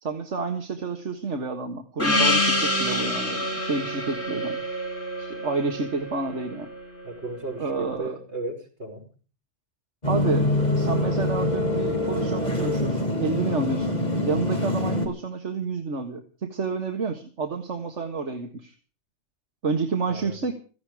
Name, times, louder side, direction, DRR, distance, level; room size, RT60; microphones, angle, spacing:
voice 1, 0.0-4.6 5.2-6.7 7.6-8.2 10.0-10.5 10.8-18.7 19.6-20.5, right 4 dB, 90° right, 5 dB, 2.0 m, -29 dB
Gong, 2.0-6.8, left 1 dB, 70° left, 7.7 m, -26 dB
voice 2, 7.0-9.0 20.0-20.4, right 2 dB, 70° right, 2 dB, 5.6 m, -35 dB
sound 1, 10.0-15.1, left 1 dB, 35° left, 3.7 m, -25 dB
17.0 x 15.0 x 4.9 m, 0.39 s
omnidirectional pair, 1.2 m